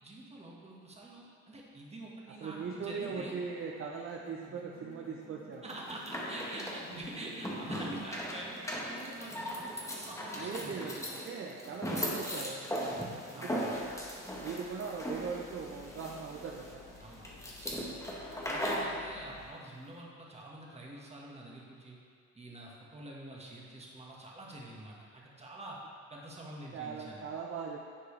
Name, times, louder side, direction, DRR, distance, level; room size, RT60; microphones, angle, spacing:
voice 1, 0.0-3.4 5.6-10.9 13.3-13.7 17.0-17.9 18.5-22.0 22.3-25.8 26.1-27.2, right 1 dB, 20° right, -4 dB, 1.5 m, -46 dB
voice 2, 2.4-5.6 10.4-13.9 14.4-16.8 18.8-19.0 26.7-27.8, right 5 dB, 45° right, -1 dB, 0.6 m, -40 dB
sound 1, 2.5-7.7, left 3 dB, 55° left, 1.1 m, -55 dB
sound 2, 5.7-18.9, equal, 10° left, 1.1 m, -38 dB
sound 3, 13.7-19.5, left 4 dB, 80° left, 1.1 m, -55 dB
10.0 x 4.6 x 3.2 m, 2.1 s
cardioid pair, 90°, 30 cm